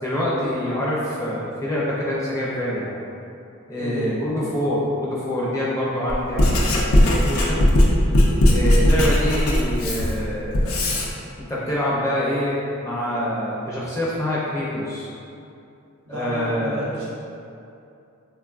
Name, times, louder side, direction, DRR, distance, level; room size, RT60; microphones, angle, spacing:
voice 1, 0.0-2.9 3.7-7.6 8.5-10.8 11.4-15.1 16.1-16.8, equal, 15° left, -7 dB, 0.4 m, -25 dB
voice 2, 3.7-4.2 16.0-17.1, equal, 85° right, -6 dB, 0.7 m, -31 dB
Writing, 6.1-11.1, left 1 dB, 75° left, 0.4 m, -18 dB
3.4 x 2.2 x 2.4 m, 2.6 s
head